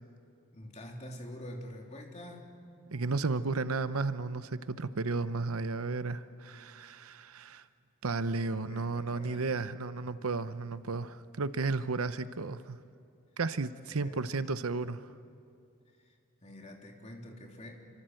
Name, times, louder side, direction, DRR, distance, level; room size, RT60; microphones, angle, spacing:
voice 1, 0.5-2.6 8.3-9.5 13.9-14.4 16.4-17.9, left 1 dB, 30° left, 1 dB, 3.1 m, -46 dB
voice 2, 2.9-7.6 8.0-12.8 13.4-15.0, right 3 dB, 85° right, 13 dB, 0.8 m, -33 dB
27.5 x 25.0 x 7.8 m, 2.5 s
head